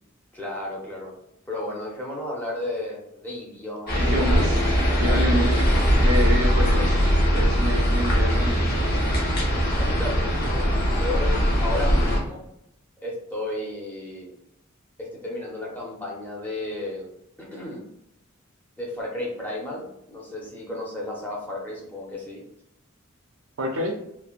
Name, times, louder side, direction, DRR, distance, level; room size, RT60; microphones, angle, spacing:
voice 1, 0.3-1.1 1.5-4.1 4.8-5.2 9.7-12.4 13.0-14.3 15.0-17.1 17.4-17.8 18.8-22.4, left 1 dB, 10° left, -4 dB, 0.7 m, -33 dB
sound 1, 3.9-12.2, equal, 50° left, 0.9 m, -21 dB
voice 2, 3.9-5.7 6.0-7.0 7.3-9.1 23.6-23.9, equal, 70° right, 2 dB, 0.6 m, -28 dB
3.2 x 2.1 x 2.4 m, 0.78 s
head